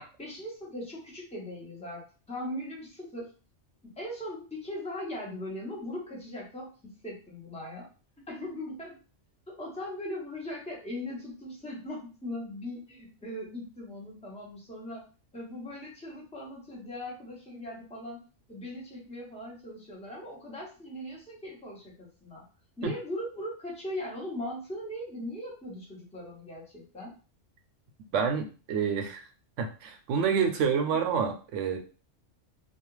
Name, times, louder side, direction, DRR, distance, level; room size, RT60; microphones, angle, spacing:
voice 1, 0.2-2.0 2.3-3.3 3.8-7.9 8.2-9.0 9.5-15.1 15.3-18.2 18.5-22.4 22.8-27.1, left 1 dB, 5° left, -4 dB, 0.8 m, -39 dB
voice 2, 28.1-29.2 29.6-31.8, right 6 dB, 75° right, 5 dB, 0.9 m, -28 dB
2.4 x 2.3 x 3.1 m, 0.35 s
omnidirectional pair, 1.3 m